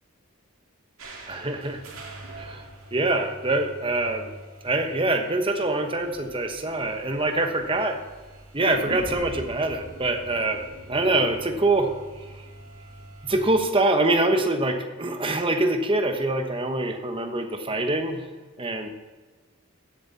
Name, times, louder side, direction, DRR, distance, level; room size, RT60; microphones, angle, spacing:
sound 1, 1.0-13.7, right 2 dB, 75° right, 2.3 m, -46 dB
voice 1, 1.3-1.8 2.3-2.7 2.9-4.3 4.6-8.0 8.5-12.5 13.2-18.3 18.6-18.9, right 2 dB, 25° right, 6 dB, 1.1 m, -25 dB
sound 2, 8.6-12.6 12.9-13.0, equal, 55° left, 3.2 m, -41 dB
15.5 x 7.5 x 4.2 m, 1.4 s
head